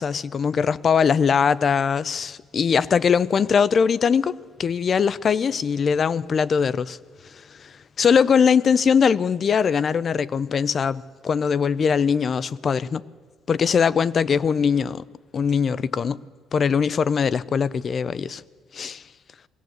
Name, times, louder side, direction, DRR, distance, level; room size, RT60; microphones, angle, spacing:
voice 1, 0.0-4.3 4.6-7.0 7.6-13.0 13.5-15.1 15.3-16.2 16.5-18.4 18.7-19.0, left 6 dB, 35° left, 0.5 m, -21 dB
21.5 x 16.5 x 8.0 m
cardioid pair, 140°, 0 cm